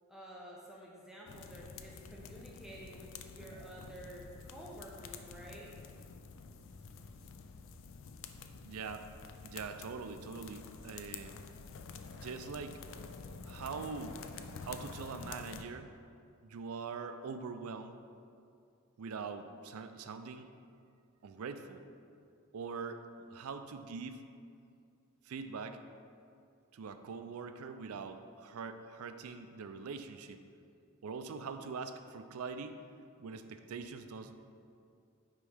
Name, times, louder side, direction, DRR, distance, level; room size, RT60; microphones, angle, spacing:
voice 1, 0.1-5.7, right 1 dB, ahead, -4 dB, 0.6 m, -50 dB
sound 1, 1.3-15.6, left 5 dB, 65° left, 0.4 m, -49 dB
voice 2, 8.6-9.1 9.4-11.4 12.1-12.8 13.5-14.2 14.6-15.9 16.4-17.9 19.0-20.5 21.2-21.8 22.5-24.2 25.2-25.8 26.7-30.4 31.0-32.8 33.2-34.4, right 5 dB, 85° right, 9 dB, 0.4 m, -43 dB
9.4 x 3.6 x 3.4 m, 2.4 s
head